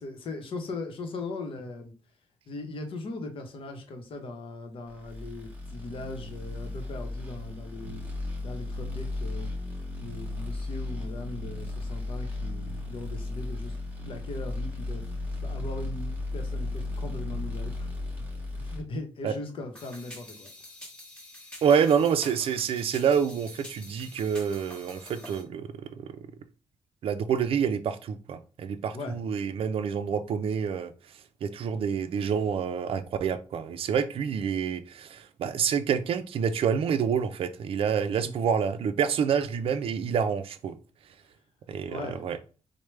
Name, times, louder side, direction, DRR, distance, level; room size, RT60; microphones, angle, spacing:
voice 1, 0.0-1.9 2.5-8.0 8.4-9.5 10.0-13.8 14.0-15.1 15.4-17.9 18.5-20.5 28.9-29.2 38.1-38.3 41.9-42.2, left 2 dB, 55° left, 0.8 m, -39 dB
sound 1, 5.0-18.8, left 2 dB, 15° right, 1.0 m, -35 dB
sound 2, 19.8-25.4, left 1 dB, 10° left, 1.0 m, -47 dB
voice 2, 21.6-26.1 27.0-30.9 31.4-40.8 41.7-42.4, right 7 dB, 60° right, 0.4 m, -27 dB
4.6 x 2.1 x 3.2 m
wide cardioid pair, 150°, 11 cm